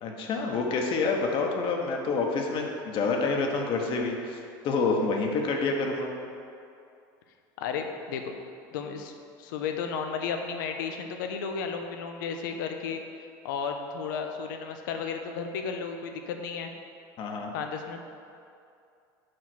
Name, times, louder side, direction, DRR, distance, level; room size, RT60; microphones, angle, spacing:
voice 1, 0.0-6.1 17.2-17.5, left 3 dB, 55° left, 1 dB, 1.1 m, -28 dB
voice 2, 7.6-8.3 8.7-9.1 9.4-13.0 13.4-16.7 17.5-18.0, left 6 dB, 80° left, 5 dB, 0.7 m, -33 dB
5.6 x 4.9 x 6.0 m, 2.5 s
supercardioid pair, 95°, 11 cm